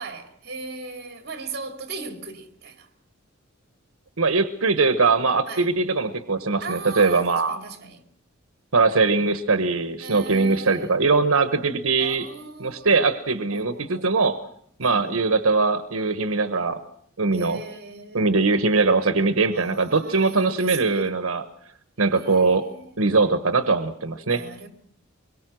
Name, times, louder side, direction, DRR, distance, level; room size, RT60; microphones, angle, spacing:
voice 1, 0.0-2.9 5.5-5.7 6.6-8.0 10.0-11.0 12.0-12.9 13.5-14.2 14.8-15.2 17.3-18.3 19.5-21.0 22.0-22.9 24.2-24.7, right 4 dB, 50° right, 2.8 m, -38 dB
voice 2, 4.2-7.6 8.7-12.3 12.6-14.4 14.8-16.8 17.2-17.6 18.1-21.4 22.0-22.6 23.0-24.4, right 3 dB, 90° right, 1.2 m, -21 dB
25.0 x 22.5 x 6.2 m
head